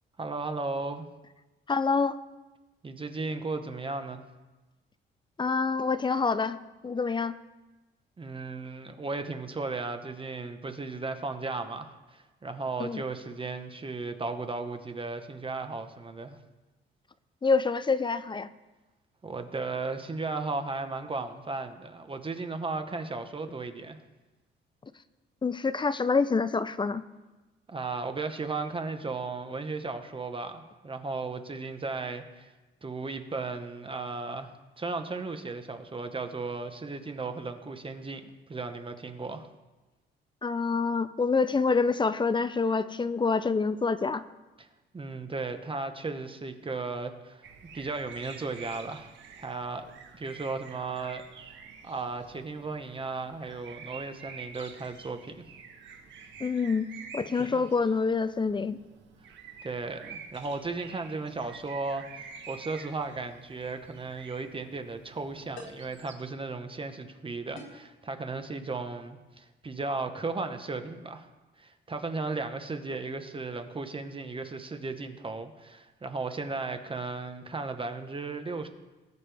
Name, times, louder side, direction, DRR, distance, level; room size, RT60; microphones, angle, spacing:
voice 1, 0.2-1.1 2.8-4.2 8.2-16.4 19.2-24.0 27.7-32.5 32.8-39.5 44.6-44.7 44.9-47.4 47.7-49.9 50.1-51.2 51.8-55.4 57.5-57.6 59.6-71.3 71.6-78.7, right 3 dB, 25° right, 7 dB, 1.1 m, -35 dB
voice 2, 1.7-2.2 5.4-6.6 6.8-7.3 12.8-13.0 17.4-18.5 25.4-27.0 40.4-44.2 56.4-56.9 57.1-58.8, left 4 dB, 25° left, 14 dB, 0.6 m, -26 dB
sound 1, 47.4-66.1, right 6 dB, 70° right, 1.6 m, -48 dB
sound 2, 63.9-64.1 65.5-66.0 67.6-67.9, left 3 dB, 85° left, 2.5 m, -47 dB
19.0 x 7.5 x 3.4 m, 1.1 s
cardioid pair, 90°, 20 cm